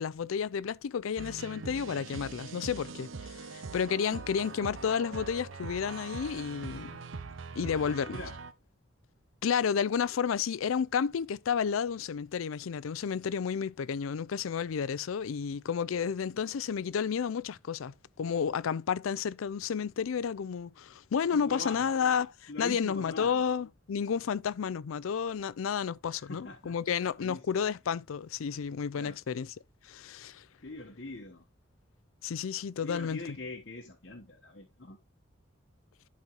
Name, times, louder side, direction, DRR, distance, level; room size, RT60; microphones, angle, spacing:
voice 1, 0.0-7.0 7.5-8.2 9.4-29.5 29.8-30.4 32.2-33.2, left 7 dB, 85° left, 0.4 m, -31 dB
sound 1, 1.2-8.5, right 4 dB, 75° right, 0.7 m, -42 dB
voice 2, 7.5-8.4 21.3-21.9 22.5-23.4 26.1-26.7 27.2-27.6 29.0-29.2 30.6-31.4 32.8-35.0, left 2 dB, 55° left, 1.1 m, -43 dB
11.5 x 4.3 x 3.0 m
head